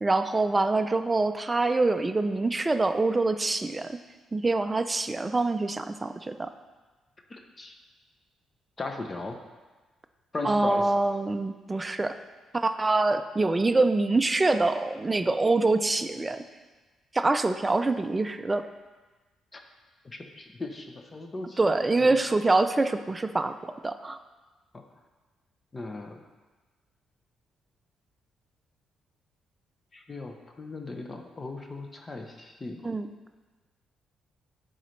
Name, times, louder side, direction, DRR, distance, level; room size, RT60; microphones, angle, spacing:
voice 1, 0.0-4.0 4.3-6.5 10.4-12.2 12.5-16.4 17.1-18.6 21.6-24.2 32.8-33.1, right 2 dB, 20° right, 8 dB, 0.4 m, -25 dB
voice 2, 7.3-7.7 8.8-9.4 10.3-10.9 19.5-19.6 20.1-21.6 22.0-22.2 24.7-24.8 25.7-26.2 29.9-32.8, left 3 dB, 30° left, 4 dB, 0.7 m, -37 dB
11.0 x 3.9 x 3.2 m, 1.3 s
cardioid pair, 90°, 0 cm